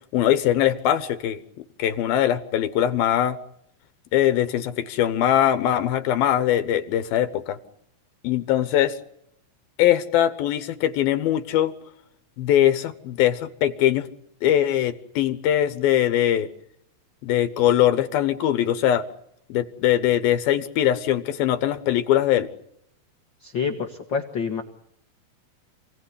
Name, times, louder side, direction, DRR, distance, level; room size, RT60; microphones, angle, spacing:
voice 1, 0.1-1.4 1.8-3.4 4.1-7.6 8.2-9.0 9.8-11.7 12.4-14.1 14.4-16.5 17.2-19.0 19.5-22.5, left 11 dB, 80° left, 11 dB, 3.0 m, -21 dB
voice 2, 23.4-24.6, left 6 dB, 45° left, 4 dB, 1.8 m, -27 dB
28.0 x 18.5 x 9.9 m, 0.74 s
omnidirectional pair, 4.2 m